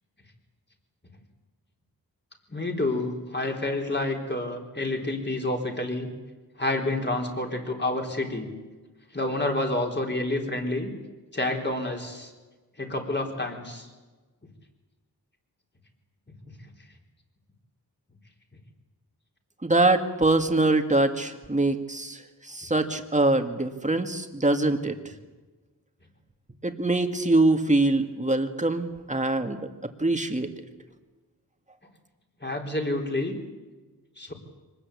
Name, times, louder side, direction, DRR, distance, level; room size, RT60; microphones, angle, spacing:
voice 1, 2.5-6.1 6.6-8.5 9.1-10.9 11.3-12.3 12.8-13.9 32.4-33.4 34.2-34.3, left 2 dB, 25° left, 2 dB, 4.0 m, -29 dB
voice 2, 19.6-25.0 26.6-29.7 30.0-30.5, right 2 dB, 20° right, 6 dB, 2.1 m, -24 dB
25.0 x 20.0 x 8.5 m, 1.2 s
wide cardioid pair, 100°, 38 cm